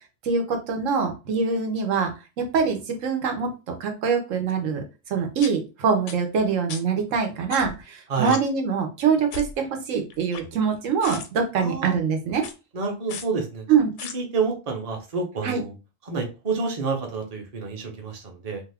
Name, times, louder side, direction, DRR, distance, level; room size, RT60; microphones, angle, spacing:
voice 1, 0.2-2.1 2.5-3.5 3.8-12.5 13.7-13.9 15.4-15.6, right 6 dB, 90° right, 4 dB, 1.1 m, -24 dB
sound 1, 4.5-4.6 5.4-5.5 6.1-6.2 6.7-6.8 7.5-7.8 8.2-8.4 9.3-9.6 10.1-10.7 11.0-11.3 12.4-12.5 13.1-13.3 14.0-14.1, left 6 dB, 75° left, 0.9 m, -35 dB
voice 2, 11.6-12.0 12.7-13.6 14.1-15.7 16.1-18.6, right 4 dB, 35° right, 2 dB, 0.7 m, -28 dB
2.7 x 2.3 x 3.4 m, 0.29 s
omnidirectional pair, 1.3 m